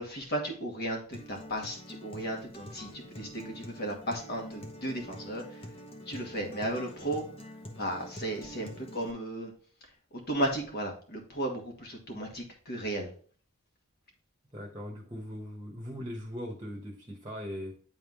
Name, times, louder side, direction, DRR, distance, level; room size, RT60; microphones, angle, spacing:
voice 1, 0.0-5.6 6.1-7.2 7.8-9.5 10.3-13.1, right 1 dB, 50° left, 2 dB, 1.4 m, -35 dB
Acoustic guitar, 1.1-9.1, equal, 25° left, 0.9 m, -46 dB
voice 2, 14.5-17.7, equal, 20° right, -1 dB, 1.1 m, -40 dB
9.3 x 3.5 x 3.6 m, 0.43 s
head